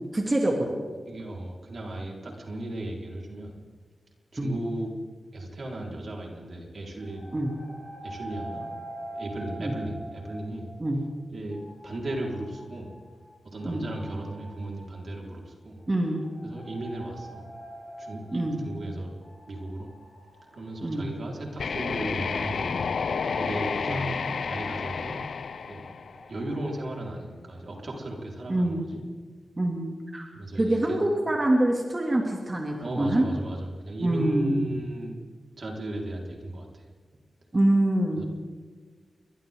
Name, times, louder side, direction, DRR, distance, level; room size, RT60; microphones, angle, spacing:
voice 1, 0.1-0.8 4.4-4.5 7.3-7.5 9.6-9.7 10.8-11.0 13.6-13.9 15.9-16.2 18.3-18.6 20.8-21.1 23.9-24.1 28.5-28.8 29.6-30.3 30.5-33.3 34.0-34.7 37.5-38.2, right 1 dB, 25° right, -1 dB, 2.8 m, -25 dB
voice 2, 1.1-3.6 4.3-4.9 5.3-7.3 8.0-8.7 9.1-10.7 11.3-12.9 13.4-15.8 16.4-17.4 18.0-19.1 19.5-19.9 20.5-22.7 23.3-24.1 24.5-25.2 25.7-25.9 26.3-29.0 30.3-31.0 32.8-35.2 35.6-36.9 38.2-38.3, right 1 dB, 55° right, -1 dB, 4.9 m, -36 dB
sound 1, 7.0-11.1 11.5-22.1 22.8-26.7, right 1 dB, 40° left, 7.9 m, -46 dB
sound 2, 21.6-26.5, left 5 dB, 75° left, 0.7 m, -30 dB
29.5 x 24.5 x 3.9 m, 1.5 s
wide cardioid pair, 120°, 0 cm